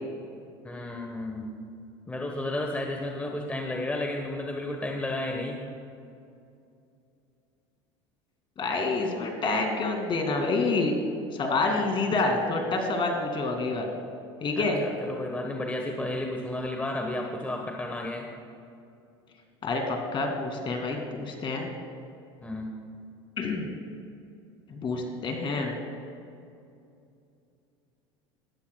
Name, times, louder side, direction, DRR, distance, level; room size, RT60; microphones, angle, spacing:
voice 1, 0.6-1.6 2.1-5.6 14.5-18.3 22.4-22.8, left 1 dB, 10° left, 1 dB, 1.2 m, -32 dB
voice 2, 8.6-11.0 11.3-13.9 14.4-14.8 19.6-21.7 23.4-23.7 24.7-25.7, left 3 dB, 40° left, 3 dB, 2.3 m, -27 dB
19.0 x 11.5 x 2.3 m, 2.5 s
supercardioid pair, 90°, 13 cm